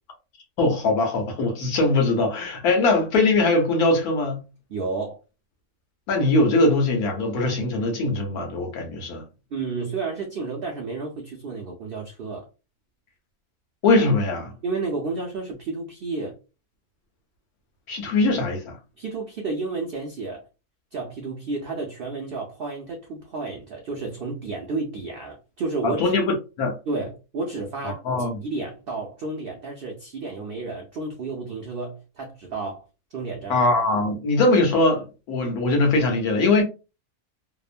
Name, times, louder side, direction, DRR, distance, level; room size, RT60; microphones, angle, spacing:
voice 1, 0.6-4.4 6.1-9.2 13.8-14.5 17.9-18.8 25.8-26.8 27.8-28.4 33.5-36.6, left 2 dB, 80° left, 1.2 m, -21 dB
voice 2, 4.7-5.2 9.5-12.5 14.6-16.4 19.0-20.4 20.9-26.2 26.9-28.0 28.4-32.8 33.1-33.6, right 3 dB, 85° right, 0.5 m, -31 dB
2.9 x 2.1 x 2.4 m
omnidirectional pair, 1.6 m